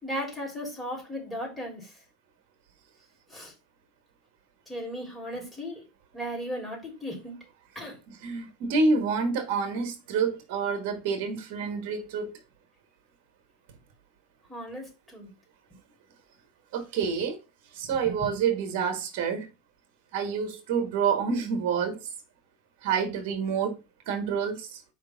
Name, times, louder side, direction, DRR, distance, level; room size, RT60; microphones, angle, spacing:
voice 1, 0.0-1.9 3.3-3.5 4.7-5.8 6.1-7.3 7.7-8.0 14.5-15.3 17.8-18.1, equal, 5° left, 3.3 m, -36 dB
voice 2, 8.1-12.3 16.7-17.4 17.7-19.5 20.1-22.1 22.8-23.8 24.1-24.8, right 5 dB, 70° right, 1.3 m, -28 dB
5.0 x 3.4 x 5.5 m
supercardioid pair, 110°, 0 cm